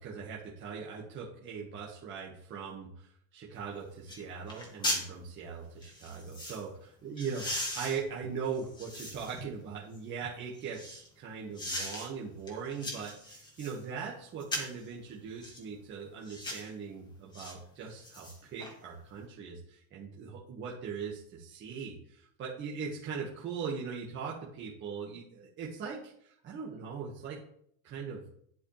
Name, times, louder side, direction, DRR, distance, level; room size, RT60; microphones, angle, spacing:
voice 1, 0.0-6.7 7.0-7.5 7.7-27.4 27.8-28.2, right 6 dB, 25° right, -4 dB, 1.8 m, -40 dB
sound 1, 3.6-3.7 4.1-4.2 4.5-5.1 5.8-6.6 7.2-9.4 9.9-11.1 11.6-12.1 12.5-13.8 14.4-14.8 15.4-15.6 16.2-16.7 17.3-17.5 17.9-18.7 19.1-19.2, left 1 dB, 10° left, 2.2 m, -38 dB
9.8 x 8.7 x 3.4 m, 0.67 s
supercardioid pair, 155°, 42 cm